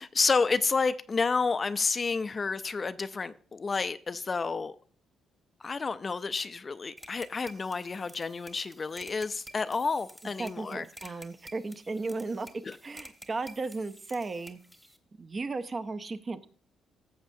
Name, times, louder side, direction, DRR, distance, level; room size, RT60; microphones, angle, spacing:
voice 1, 0.0-4.8 5.6-10.8 12.6-12.8, left 4 dB, 35° left, 0.4 m, -30 dB
sound 1, 7.0-15.0, equal, 5° right, 1.1 m, -51 dB
voice 2, 10.4-12.5 12.8-14.6 15.2-16.5, right 3 dB, 35° right, 0.6 m, -35 dB
13.5 x 7.3 x 2.7 m
cardioid pair, 90°, 0 cm